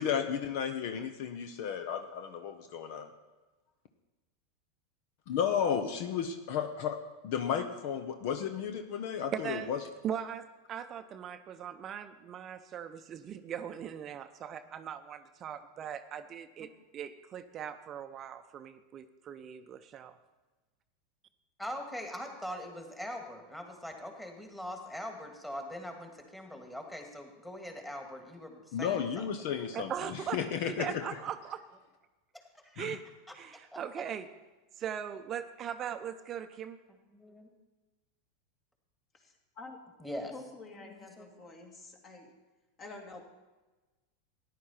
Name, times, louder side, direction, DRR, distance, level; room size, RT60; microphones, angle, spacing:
voice 1, 0.0-3.1 5.3-7.0 7.2-9.8 28.7-31.0 32.8-33.0, left 8 dB, 60° left, 8 dB, 0.8 m, -33 dB
voice 2, 9.3-9.8 10.0-20.2 29.7-31.6 32.8-33.1 33.3-34.3 34.8-36.8, right 9 dB, 35° right, 9 dB, 0.6 m, -40 dB
voice 3, 21.6-29.3 32.3-32.8 33.3-33.4 33.7-33.8 36.9-37.5 40.0-40.3 40.8-41.3, left 1 dB, 10° left, 3 dB, 2.2 m, -42 dB
voice 4, 39.1-39.8 40.2-42.3 42.8-43.2, left 3 dB, 35° left, 2 dB, 2.4 m, -48 dB
14.0 x 10.5 x 4.4 m, 1.2 s
hypercardioid pair, 95°, 0 cm